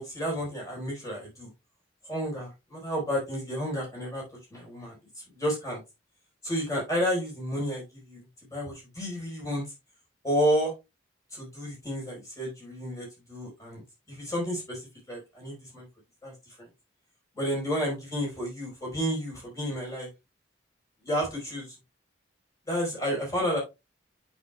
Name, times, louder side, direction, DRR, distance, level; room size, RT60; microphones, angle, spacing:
voice 1, 0.0-1.5 2.0-4.2 4.5-5.0 5.3-5.8 6.4-8.2 8.5-9.6 10.2-10.7 11.3-15.9 16.2-16.3 16.6-16.7 17.4-20.1 21.0-21.7 22.7-23.6, equal, 15° left, -3 dB, 4.3 m, -31 dB
8.1 x 6.9 x 2.3 m, 0.23 s
head